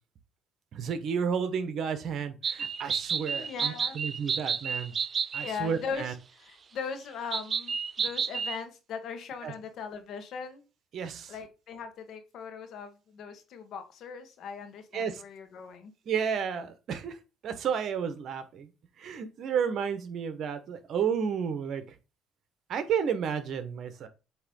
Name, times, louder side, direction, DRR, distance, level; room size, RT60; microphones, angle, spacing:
voice 1, 0.7-4.9 5.3-6.1 9.4-9.5 10.9-11.3 14.9-15.2 16.1-17.2 17.4-18.7 19.0-21.8 22.7-24.1, right 7 dB, 60° right, 9 dB, 1.2 m, -31 dB
sound 1, 2.4-5.6 7.3-8.6, right 6 dB, 40° right, 0.5 m, -31 dB
voice 2, 3.4-4.0 5.4-10.6 11.3-15.9, left 6 dB, 65° left, 8 dB, 1.4 m, -39 dB
8.0 x 3.1 x 5.4 m, 0.30 s
cardioid pair, 90°, 0 cm